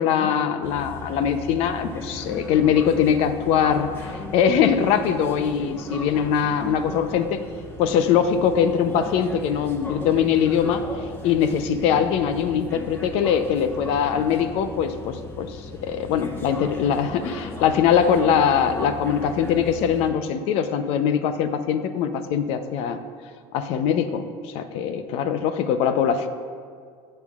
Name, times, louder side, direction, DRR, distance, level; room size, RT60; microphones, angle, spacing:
voice 1, 0.0-7.4 7.8-10.8 11.2-23.0 23.5-26.3, left 8 dB, 65° left, 9 dB, 0.7 m, -22 dB
sound 1, 0.6-20.1, left 2 dB, 20° left, 1.4 m, -37 dB
15.0 x 7.8 x 2.5 m, 2.1 s
supercardioid pair, 100°, 11 cm